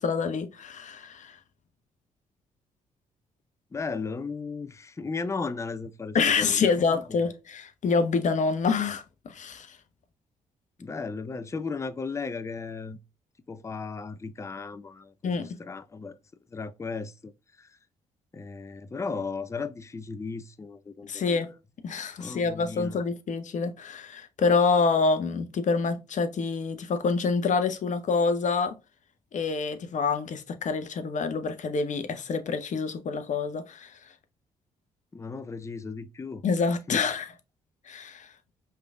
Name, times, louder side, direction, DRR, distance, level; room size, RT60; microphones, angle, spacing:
voice 1, 0.0-1.4 6.1-9.8 15.2-15.6 21.1-21.5 21.8-28.7 29.3-33.9 36.4-37.3 37.9-38.3, left 4 dB, 50° left, 0.8 m, -27 dB
voice 2, 3.7-7.0 10.8-13.0 13.5-16.2 16.5-17.3 17.6-17.7 18.3-21.5 22.2-23.0 35.1-36.4 36.9-37.0, left 4 dB, 20° left, 0.4 m, -36 dB
4.9 x 3.3 x 2.3 m
hypercardioid pair, 45°, 16 cm